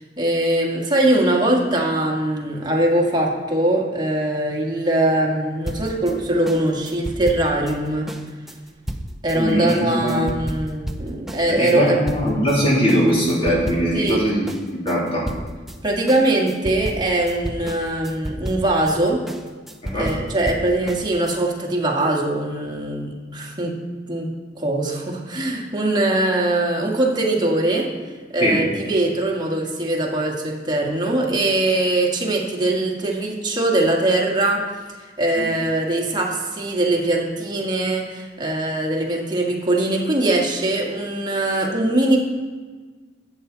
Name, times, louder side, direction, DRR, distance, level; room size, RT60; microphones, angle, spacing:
voice 1, 0.0-8.1 9.2-12.0 13.9-14.2 15.8-19.2 19.9-23.8 24.1-24.3 24.5-27.9 28.3-34.7 35.2-42.2, right 1 dB, 25° right, -1 dB, 1.8 m, -21 dB
sound 1, 5.7-12.6 12.9-14.2 14.5-21.4, equal, ahead, 0.6 m, -32 dB
voice 2, 9.3-10.2 11.5-15.2 19.8-20.1 28.4-28.5 35.4-35.5, equal, 35° left, -6 dB, 3.2 m, -21 dB
13.0 x 8.5 x 4.0 m, 1.4 s
head